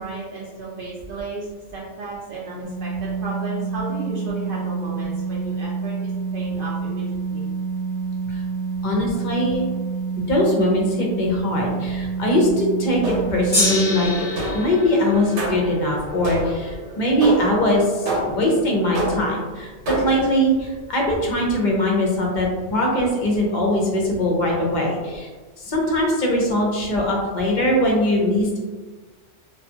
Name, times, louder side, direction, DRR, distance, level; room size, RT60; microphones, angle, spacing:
voice 1, 0.0-7.4 16.9-17.1 20.2-20.3, right 2 dB, 60° right, -6 dB, 0.6 m, -34 dB
sound 1, 2.6-14.1, right 5 dB, 20° right, 0.3 m, -28 dB
voice 2, 8.8-9.6 10.3-25.3 25.6-28.6, left 1 dB, 50° left, -2 dB, 0.6 m, -21 dB
sound 2, 13.0-13.5 14.4-14.8 15.4-15.8 16.2-16.7 17.2-17.6 18.1-18.5 18.9-19.4 19.9-20.3, right 2 dB, 75° right, 1.0 m, -27 dB
Gong, 13.5-19.9 20.7-20.8, left 1 dB, 10° left, 0.9 m, -29 dB
2.5 x 2.3 x 2.7 m, 1.3 s
omnidirectional pair, 1.2 m